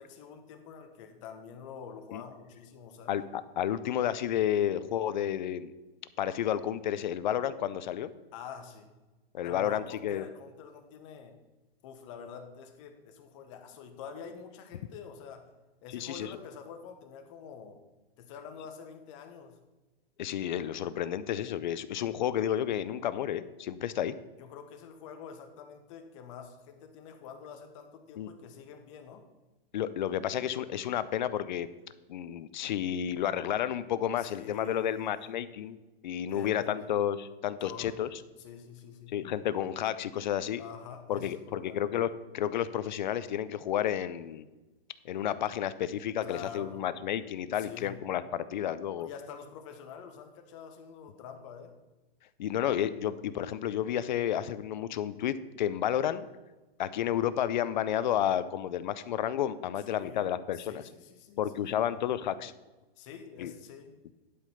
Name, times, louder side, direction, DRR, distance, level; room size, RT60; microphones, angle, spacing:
voice 1, 0.0-3.2 8.3-8.9 9.4-11.3 11.8-15.4 15.8-17.8 18.2-19.6 24.4-29.2 34.2-35.3 36.3-36.9 37.6-37.9 38.4-39.2 40.6-41.9 46.2-46.8 47.6-48.0 49.0-51.7 59.9-61.8 63.0-64.0, left 7 dB, 30° left, 6 dB, 1.1 m, -46 dB
voice 2, 3.1-5.7 6.2-8.1 9.3-10.3 15.9-16.3 20.2-24.1 28.2-28.3 29.7-31.7 32.1-35.8 36.0-38.1 39.1-40.6 41.1-44.5 45.0-49.1 52.4-56.2 56.8-60.8 61.4-62.5 63.4-63.5, left 10 dB, 50° left, 15 dB, 0.5 m, -31 dB
11.0 x 5.1 x 5.6 m, 1.1 s
hypercardioid pair, 160°, 31 cm